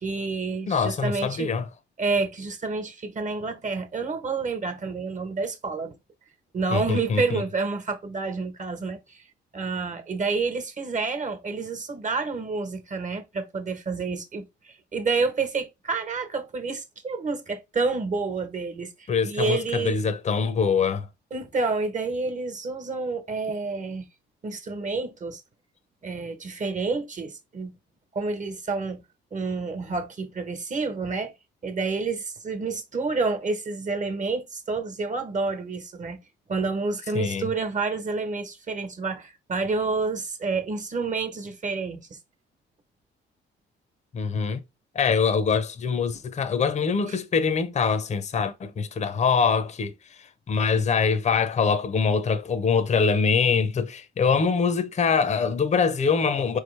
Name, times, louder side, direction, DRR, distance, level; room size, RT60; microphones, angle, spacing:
voice 1, 0.0-1.5 2.0-5.9 6.5-9.2 9.5-20.0 21.3-24.1 24.4-25.4 26.0-27.7 28.1-29.0 29.3-31.3 31.6-36.2 36.5-42.2 47.1-47.2, right 4 dB, 40° right, 1.2 m, -29 dB
voice 2, 0.7-1.7 6.7-7.4 19.1-21.1 37.1-37.5 44.1-44.6 44.9-49.9 50.2-56.6, left 5 dB, 35° left, 0.6 m, -24 dB
4.7 x 3.2 x 3.2 m
cardioid pair, 90°, 20 cm